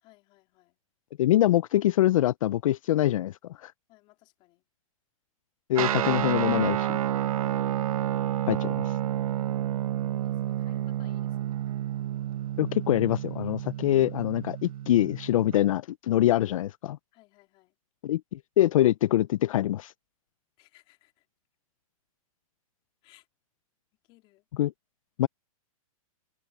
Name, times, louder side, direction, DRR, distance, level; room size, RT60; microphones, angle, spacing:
voice 1, 0.0-0.8 3.9-4.6 7.4-7.7 10.2-11.6 17.1-17.8 20.6-21.3 23.0-23.3 24.0-24.5, left 20 dB, 30° left, 3.6 m, -60 dB
voice 2, 1.2-3.7 5.7-7.0 8.5-9.0 12.6-17.0 18.0-19.9 24.6-24.7 25.2-25.3, left 13 dB, 65° left, 0.5 m, -24 dB
Guitar, 5.7-15.6, right 12 dB, 75° right, 0.7 m, -30 dB
hypercardioid pair, 165°, 18 cm